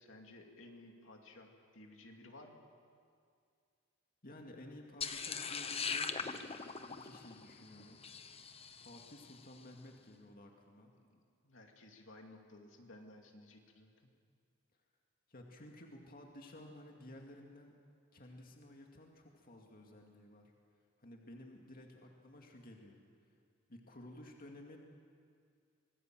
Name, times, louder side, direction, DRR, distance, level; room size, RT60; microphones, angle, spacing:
voice 1, 0.0-2.6 11.0-13.9, left 2 dB, 75° left, 2 dB, 2.5 m, -56 dB
voice 2, 4.2-6.2 6.7-8.0 8.8-10.9 15.3-17.7 18.1-20.5 21.0-23.0 23.7-24.8, left 1 dB, 50° left, 1 dB, 2.3 m, -54 dB
sound 1, 5.0-9.3, left 5 dB, 30° left, 1.0 m, -41 dB
26.0 x 19.5 x 7.6 m, 2.3 s
head